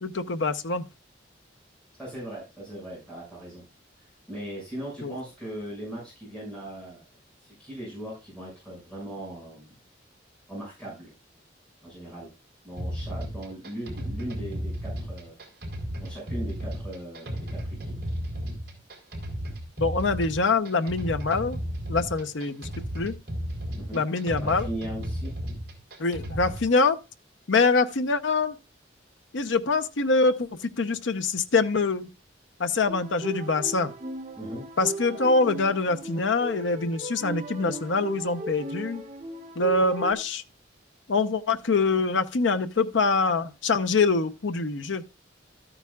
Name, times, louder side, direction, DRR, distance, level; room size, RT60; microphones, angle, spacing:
voice 1, 0.0-0.8 5.0-5.1 19.8-21.6 21.9-22.7 22.9-23.1 23.9-24.7 26.0-27.0 27.5-28.6 29.3-32.1 32.6-33.9 34.8-39.0 39.6-40.4 41.1-45.0, left 3 dB, 90° left, 0.8 m, -24 dB
voice 2, 1.9-3.6 4.0-7.1 7.4-9.7 10.5-11.1 11.8-12.3 12.6-15.3 16.0-17.9 23.8-25.3 34.4-34.6, right 1 dB, 5° left, 6.3 m, -39 dB
sound 1, 12.8-26.7, equal, 55° right, 3.9 m, -34 dB
sound 2, 32.9-40.1, right 2 dB, 40° right, 1.7 m, -37 dB
13.0 x 8.9 x 2.4 m
head